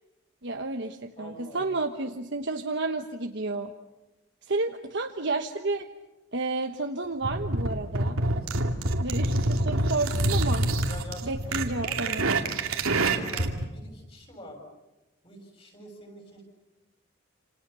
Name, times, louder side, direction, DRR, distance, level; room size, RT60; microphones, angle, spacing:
voice 1, 0.4-3.7 4.5-5.9 6.3-8.2 9.0-10.7 11.2-12.3, right 3 dB, 55° right, 4 dB, 1.2 m, -31 dB
voice 2, 1.2-1.8 10.9-14.6 15.2-16.4, left 1 dB, 25° left, 3 dB, 7.0 m, -46 dB
sound 1, 7.2-13.6, right 2 dB, 80° right, 2.6 m, -26 dB
29.0 x 27.5 x 6.9 m, 1.0 s
head